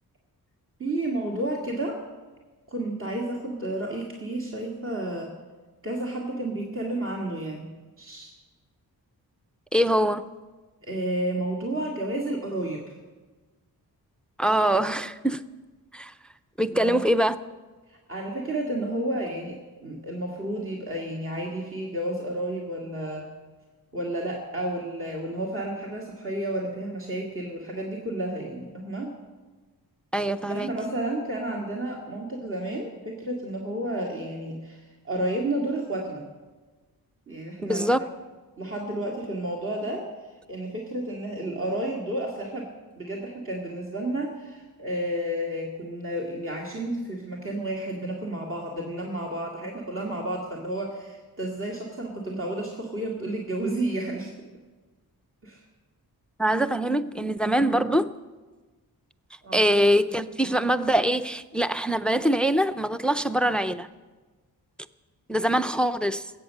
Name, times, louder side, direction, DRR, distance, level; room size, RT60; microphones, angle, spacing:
voice 1, 0.8-2.0 2.7-5.3 5.8-7.7 8.0-8.3 10.8-13.0 16.6-17.0 17.9-23.3 23.9-29.1 30.5-36.3 37.3-37.9 38.6-42.7 43.0-54.3 55.4-55.6 59.4-59.6, right 1 dB, 35° right, 2.0 m, -31 dB
voice 2, 9.7-10.3 14.4-15.4 15.9-16.1 16.6-17.4 30.1-30.7 37.6-38.0 56.4-58.1 59.5-63.9 65.3-66.2, equal, 5° left, 0.4 m, -23 dB
20.5 x 8.8 x 6.5 m
wide cardioid pair, 110°, 37 cm